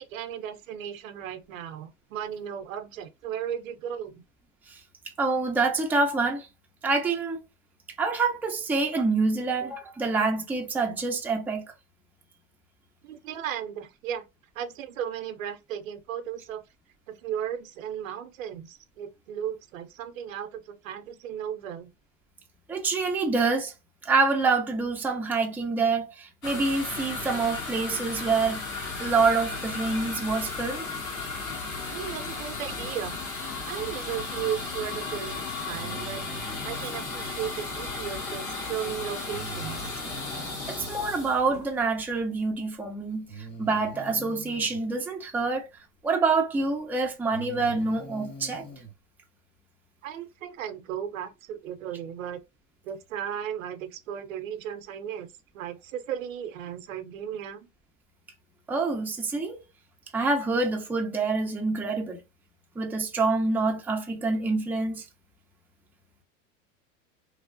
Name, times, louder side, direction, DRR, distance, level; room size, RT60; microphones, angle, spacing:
voice 1, 0.0-4.2 13.0-14.2 14.5-16.6 17.1-21.9 31.9-33.2 33.6-36.3 36.6-39.9 50.0-52.4 52.8-55.3 55.5-57.7, right 9 dB, 85° right, 0.6 m, -35 dB
voice 2, 5.2-6.5 6.8-7.4 8.0-11.7 22.7-23.7 24.0-28.6 29.0-30.9 40.7-45.7 46.0-48.7 58.7-59.6 60.1-62.2 62.8-65.0, right 3 dB, 5° right, 0.4 m, -26 dB
sound 1, 26.4-42.1, left 3 dB, 50° left, 1.6 m, -35 dB
Breathing, 35.7-37.3 39.3-40.9 42.3-42.4 43.3-44.8 46.4-46.5 47.1-48.9, right 2 dB, 25° left, 1.4 m, -43 dB
3.0 x 2.0 x 2.5 m
hypercardioid pair, 95°, 39 cm